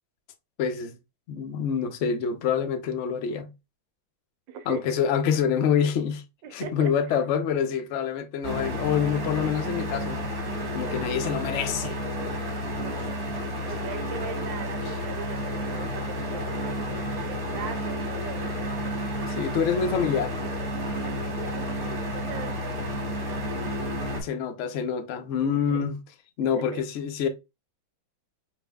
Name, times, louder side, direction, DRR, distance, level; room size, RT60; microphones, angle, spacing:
voice 1, 0.6-1.0 1.3-3.5 4.7-6.2 6.5-10.3 10.7-12.0 19.3-20.3 23.9-25.9 26.4-27.3, left 7 dB, 85° left, 0.6 m, -26 dB
voice 2, 4.5-4.9 5.3-5.4 6.4-7.2 12.8-18.7 21.5-22.7 25.5-25.8 26.5-26.8, right 7 dB, 75° right, 1.3 m, -40 dB
sound 1, 8.4-24.2, equal, 45° right, 2.1 m, -31 dB
5.4 x 3.2 x 2.2 m
omnidirectional pair, 2.2 m